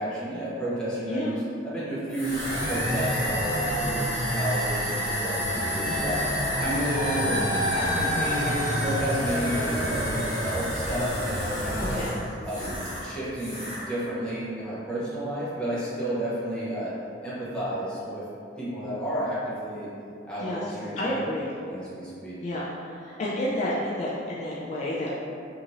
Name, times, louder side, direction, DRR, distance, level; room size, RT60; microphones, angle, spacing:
voice 1, 0.0-1.4 1.6-2.4 2.7-6.2 6.6-7.4 7.7-12.0 12.4-12.7 13.0-16.9 17.2-18.2 18.6-19.9 20.2-21.1 21.7-22.4, right 1 dB, 5° left, -10 dB, 0.7 m, -31 dB
sound 1, 2.1-13.1 13.4-13.9, equal, 30° right, 1.2 m, -28 dB
voice 2, 11.8-12.1 20.4-20.7 21.0-21.5 22.4-25.2, left 1 dB, 40° left, -6 dB, 0.3 m, -30 dB
2.7 x 2.5 x 3.0 m, 2.5 s
head